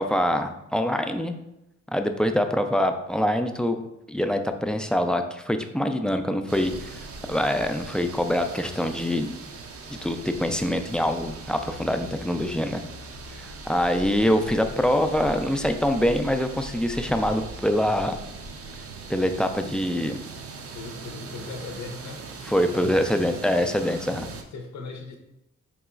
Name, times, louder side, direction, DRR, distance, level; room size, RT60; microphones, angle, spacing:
voice 1, 0.0-1.4 1.9-3.8 4.1-7.0 7.3-9.3 9.9-12.8 13.4-18.2 19.1-20.2 22.5-24.3, equal, 5° left, 6 dB, 0.3 m, -24 dB
sound 1, 6.5-24.4, right 3 dB, 50° right, 0.5 m, -40 dB
voice 2, 20.7-22.2 22.7-23.1 23.8-25.2, left 4 dB, 65° left, 3 dB, 0.6 m, -39 dB
4.1 x 2.9 x 2.4 m, 0.89 s
cardioid pair, 55°, 30 cm